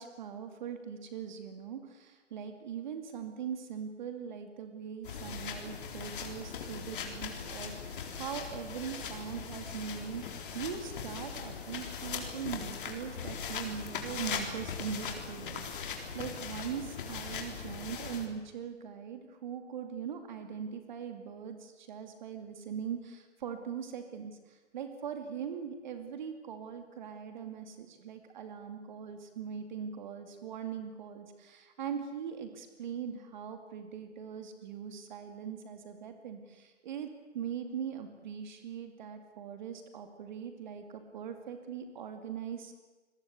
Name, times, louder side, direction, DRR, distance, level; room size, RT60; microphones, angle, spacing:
voice 1, 0.0-42.7, right 7 dB, 40° right, 7 dB, 2.5 m, -41 dB
sound 1, 5.0-18.3, left 6 dB, 45° left, 4.1 m, -40 dB
27.5 x 21.5 x 8.3 m, 1.2 s
figure-of-eight pair, 140°, 36 cm